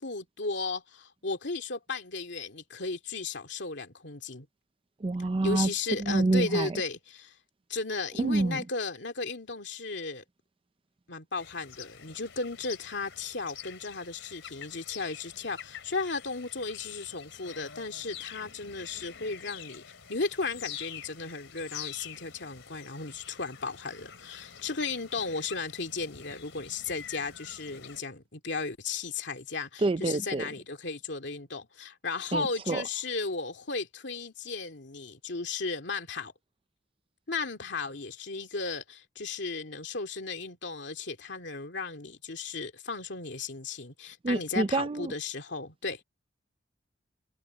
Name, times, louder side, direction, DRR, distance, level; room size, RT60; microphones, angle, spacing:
voice 1, 0.0-4.5 5.4-7.3 7.7-10.2 11.1-19.8 20.1-36.3 37.3-46.0, left 4 dB, 65° left, 2.7 m, -35 dB
voice 2, 5.0-5.7 6.0-6.8 8.2-8.7 29.8-30.5 32.3-32.8 44.2-45.1, right 2 dB, 30° right, 0.5 m, -27 dB
sound 1, 11.4-28.0, left 9 dB, 85° left, 2.9 m, -46 dB
head